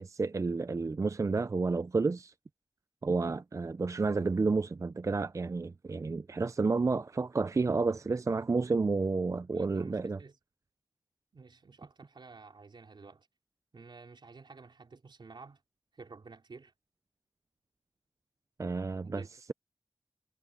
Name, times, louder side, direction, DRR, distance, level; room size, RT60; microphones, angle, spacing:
voice 1, 0.0-2.3 3.0-10.2 18.6-19.2, right 4 dB, 45° right, 0.4 m, -30 dB
voice 2, 9.3-10.4 11.3-13.3 13.7-15.6 15.9-16.7 18.9-19.3, right 4 dB, 85° right, 4.2 m, -52 dB
wide cardioid pair, 60°, 8 cm